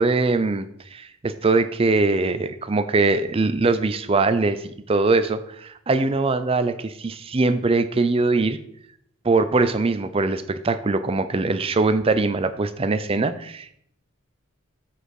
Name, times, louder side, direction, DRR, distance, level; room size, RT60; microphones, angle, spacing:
voice 1, 0.0-8.6 9.2-13.7, right 3 dB, 25° right, 11 dB, 0.4 m, -22 dB
7.8 x 4.3 x 4.8 m, 0.70 s
head